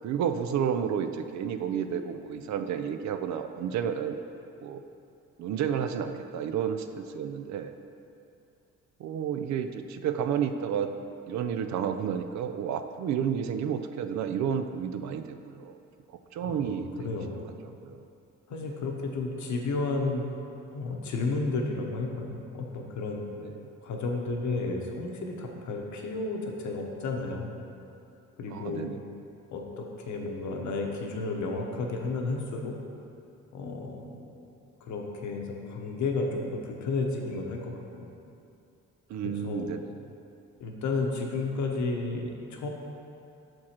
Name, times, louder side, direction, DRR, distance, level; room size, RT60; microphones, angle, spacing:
voice 1, 0.0-4.2 4.6-4.8 5.4-7.7 9.0-10.9 11.3-15.8 16.1-17.1 17.5-18.0 18.7-18.8 23.4-23.7 28.5-29.1 39.1-39.9, right 8 dB, 65° right, 8 dB, 0.4 m, -31 dB
voice 2, 16.4-17.4 18.5-20.2 20.7-23.2 23.8-27.5 28.4-28.9 29.5-32.8 33.5-34.5 34.8-38.1 39.2-39.7 40.6-42.7, left 3 dB, 70° left, 1 dB, 0.9 m, -32 dB
6.1 x 4.5 x 4.3 m, 2.6 s
cardioid pair, 90°, 30 cm